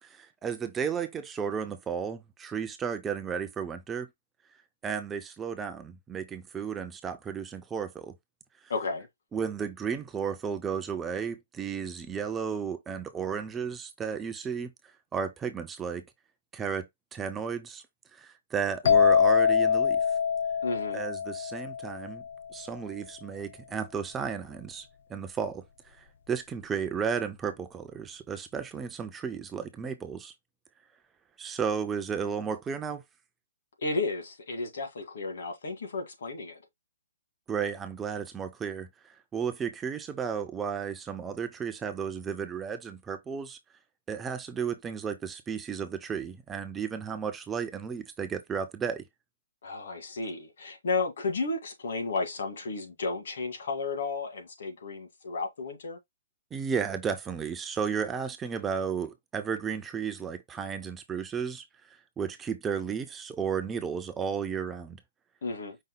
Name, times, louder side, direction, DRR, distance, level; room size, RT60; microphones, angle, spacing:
voice 1, 0.0-4.1 4.8-8.1 9.3-14.7 15.1-16.0 16.5-17.8 18.1-20.0 20.9-22.2 22.5-30.3 31.4-33.0 37.5-43.6 44.1-49.0 56.5-65.0, right 6 dB, 10° right, 0.5 m, -33 dB
voice 2, 8.7-9.1 20.6-21.0 33.8-36.6 49.6-56.0 65.4-65.8, left 3 dB, 65° left, 1.7 m, -33 dB
sound 1, 18.8-22.5, left 7 dB, 50° left, 0.6 m, -24 dB
5.4 x 2.2 x 3.9 m
hypercardioid pair, 160°, 0 cm